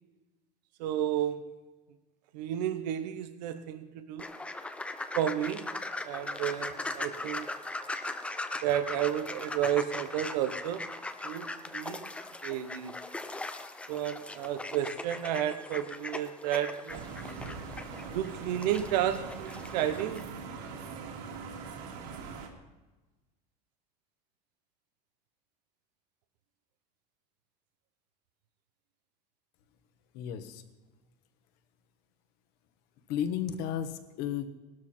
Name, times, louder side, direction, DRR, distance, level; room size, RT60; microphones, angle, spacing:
voice 1, 0.8-1.5 2.3-4.3 5.1-5.7 6.0-7.5 8.6-10.9 11.2-12.1 12.4-13.0 13.9-17.1 18.1-20.2, right 11 dB, 85° right, 10 dB, 1.1 m, -32 dB
sound 1, 4.2-20.2, left 2 dB, 5° left, 0.6 m, -39 dB
sound 2, 16.9-22.5, right 5 dB, 60° right, 3.0 m, -42 dB
voice 2, 30.1-30.6 33.1-34.5, left 9 dB, 50° left, 10 dB, 1.4 m, -33 dB
19.5 x 12.5 x 4.4 m, 1.2 s
cardioid pair, 160°, 21 cm